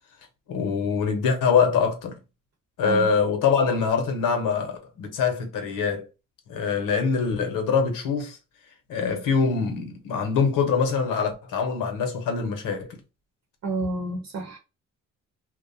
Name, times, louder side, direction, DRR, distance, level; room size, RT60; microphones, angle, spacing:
voice 1, 0.5-2.2 2.8-6.1 6.5-8.4 8.9-13.0, left 5 dB, 75° left, 0.8 m, -24 dB
voice 2, 13.6-14.6, right 2 dB, 55° right, 0.8 m, -29 dB
2.5 x 2.1 x 2.5 m
cardioid pair, 75°, 32 cm